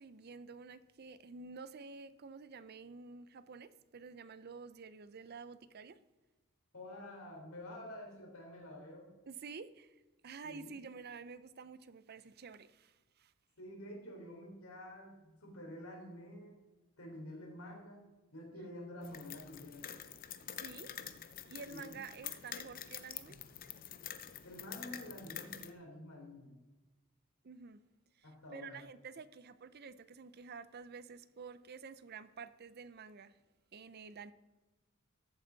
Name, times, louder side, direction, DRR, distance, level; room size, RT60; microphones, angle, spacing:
voice 1, 0.0-6.0 9.3-10.0 10.2-13.3 20.5-20.9 21.5-23.4 27.4-27.8 28.2-33.4 33.7-34.3, right 5 dB, 50° right, 0.5 m, -50 dB
voice 2, 6.7-9.1 10.4-10.7 13.6-16.6 17.0-18.0 18.3-19.8 21.7-22.0 24.4-26.6 28.2-28.8, left 1 dB, 80° left, 3.6 m, -49 dB
sound 1, 19.0-25.7, left 9 dB, 40° left, 0.6 m, -47 dB
14.0 x 7.9 x 4.0 m
head